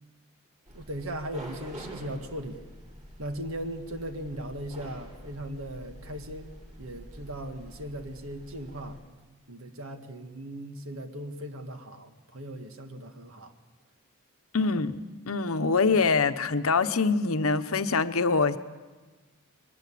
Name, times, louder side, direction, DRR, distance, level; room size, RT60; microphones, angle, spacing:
sound 1, 0.7-9.0, equal, 35° right, 7.5 m, -46 dB
voice 1, 0.7-2.7 3.2-6.5 6.8-9.0 9.5-13.5, right 1 dB, 65° right, 6 dB, 1.8 m, -38 dB
voice 2, 14.5-15.0 15.3-18.6, left 4 dB, 70° left, 10 dB, 1.0 m, -24 dB
22.5 x 20.0 x 8.6 m, 1.3 s
head